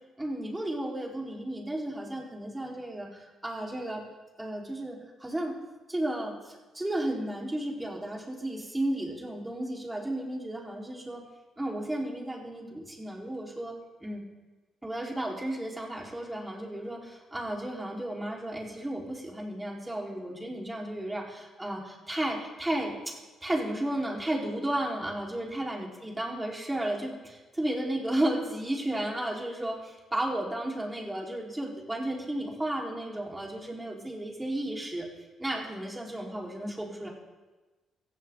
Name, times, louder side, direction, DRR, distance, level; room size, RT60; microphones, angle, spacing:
voice 1, 0.2-3.1 3.4-4.0 4.4-5.6 5.9-11.3 11.6-13.7 14.0-14.2 14.8-23.1 23.4-35.1 35.4-37.1, right 1 dB, 15° right, -2 dB, 5.0 m, -33 dB
17.5 x 15.0 x 4.2 m, 1.2 s
hypercardioid pair, 45°, 0 cm